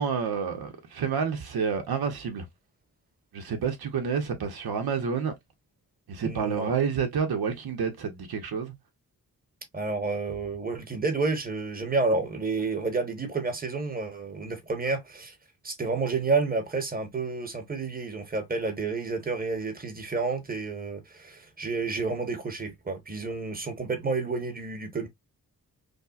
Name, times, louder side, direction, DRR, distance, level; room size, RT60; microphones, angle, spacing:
voice 1, 0.0-2.4 3.3-5.3 6.1-8.8, right 6 dB, 90° right, 1.0 m, -29 dB
voice 2, 6.2-6.7 9.7-15.4 15.6-25.1, right 3 dB, 25° right, 1.2 m, -30 dB
5.2 x 2.2 x 2.4 m
wide cardioid pair, 85°, 36 cm